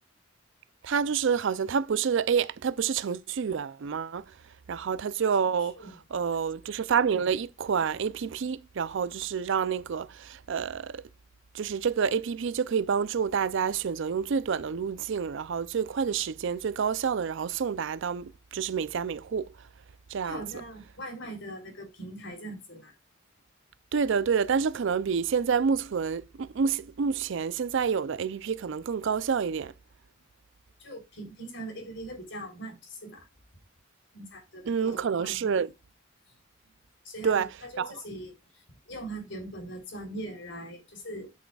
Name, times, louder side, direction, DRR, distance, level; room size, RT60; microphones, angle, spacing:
voice 1, 0.8-4.3 4.7-5.8 6.1-11.0 11.5-19.5 20.1-20.4 23.9-29.7 34.7-35.7 37.2-37.5 37.8-37.9, right 6 dB, 65° right, 0.4 m, -28 dB
voice 2, 20.2-22.9 30.8-33.2 34.1-35.5 37.0-37.5 37.7-41.4, right 1 dB, 65° left, 3.4 m, -41 dB
11.5 x 6.4 x 2.3 m
head